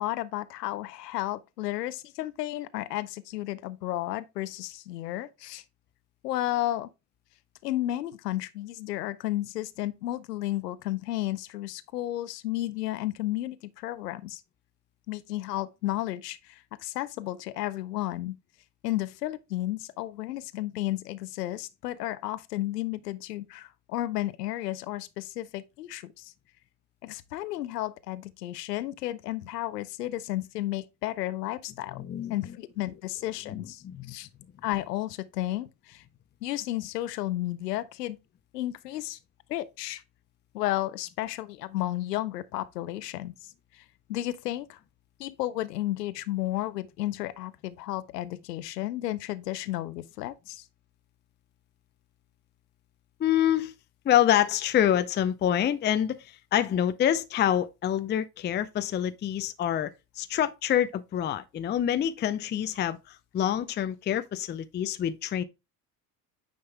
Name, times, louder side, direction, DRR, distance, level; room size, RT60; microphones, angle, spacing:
voice 1, 0.0-5.6 6.2-6.9 7.6-14.4 15.1-18.4 18.8-26.3 27.0-32.0 32.3-34.3 34.6-36.0 36.4-38.2 38.5-39.2 39.5-40.0 40.5-43.8 44.1-44.8 45.2-50.7, left 15 dB, 75° left, 0.7 m, -33 dB
voice 2, 31.9-32.4 33.5-34.1 53.2-53.7 54.0-59.9 60.2-65.4, left 10 dB, 20° left, 0.6 m, -26 dB
9.4 x 5.4 x 2.2 m
figure-of-eight pair, 65°, 48 cm